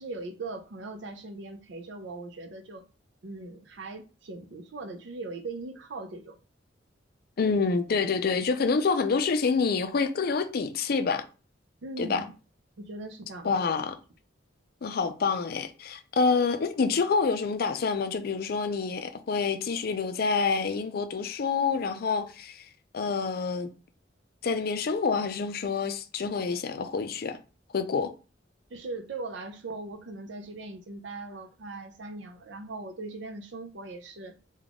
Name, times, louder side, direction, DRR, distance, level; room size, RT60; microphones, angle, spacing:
voice 1, 0.0-2.8 3.2-6.4 11.8-12.3 12.8-13.8 28.7-34.4, right 3 dB, 70° right, 0.5 m, -40 dB
voice 2, 7.4-11.2 12.0-12.2 13.4-13.9 14.8-22.7 22.9-23.7 24.4-27.4 27.7-28.1, left 5 dB, 55° left, 0.4 m, -27 dB
3.5 x 2.3 x 3.6 m
head